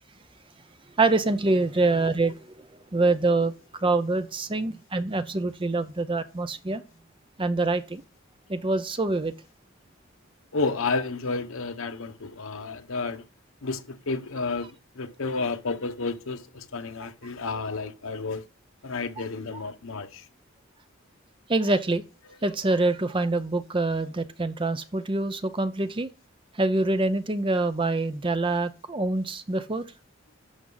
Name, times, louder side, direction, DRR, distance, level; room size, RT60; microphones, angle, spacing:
voice 1, 1.0-2.7 2.9-3.5 3.8-6.8 7.4-8.0 8.5-9.3 19.2-19.3 19.5-19.6 21.5-22.0 22.4-26.1 26.5-29.8, right 2 dB, 25° right, 0.6 m, -25 dB
voice 2, 10.5-13.2 13.6-18.4 18.8-20.2, left 3 dB, 80° left, 1.0 m, -31 dB
11.5 x 6.2 x 3.9 m
head